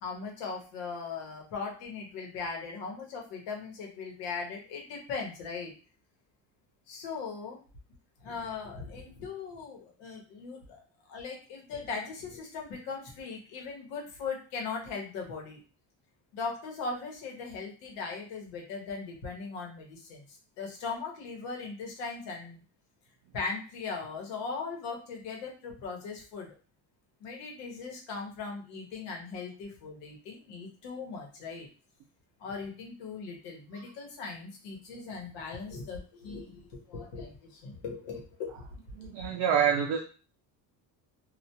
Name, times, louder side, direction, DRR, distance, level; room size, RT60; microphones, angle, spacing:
voice 1, 0.0-5.7 6.9-7.6 8.2-10.8 11.1-15.6 16.3-20.2 20.6-22.6 23.3-26.5 27.2-31.7 32.4-38.6, left 4 dB, 75° left, 0 dB, 1.0 m, -39 dB
voice 2, 38.9-40.0, right 8 dB, 65° right, 1 dB, 0.5 m, -27 dB
2.4 x 2.2 x 2.8 m, 0.37 s
cardioid pair, 175°, 43 cm